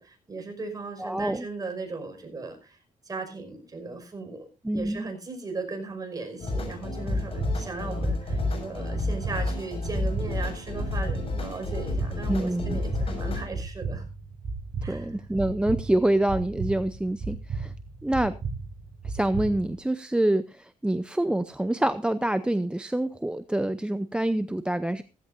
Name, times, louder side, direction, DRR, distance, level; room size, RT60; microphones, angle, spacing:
voice 1, 0.0-2.8 3.0-14.1 14.8-15.2, right 3 dB, 25° right, 4 dB, 5.6 m, -37 dB
voice 2, 1.0-1.5 4.6-5.1 12.3-12.8 14.9-17.7 18.0-18.4 19.0-25.0, right 1 dB, 5° right, 12 dB, 0.7 m, -26 dB
sound 1, 6.4-13.4, left 2 dB, 40° left, 6.6 m, -31 dB
sound 2, 6.6-19.8, right 4 dB, 45° right, 5.2 m, -35 dB
16.5 x 15.0 x 2.6 m, 0.30 s
cardioid pair, 115°, 14 cm